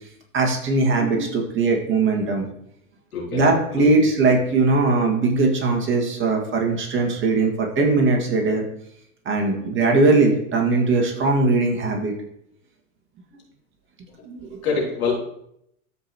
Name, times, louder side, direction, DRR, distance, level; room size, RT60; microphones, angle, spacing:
voice 1, 0.3-2.5 3.3-8.6 9.3-12.1 14.3-14.6, right 3 dB, 30° right, 1 dB, 2.1 m, -20 dB
voice 2, 3.1-3.5 3.8-3.9 14.6-15.1, left 5 dB, 75° left, -3 dB, 3.6 m, -24 dB
13.5 x 5.1 x 3.1 m, 0.74 s
hypercardioid pair, 100°, 43 cm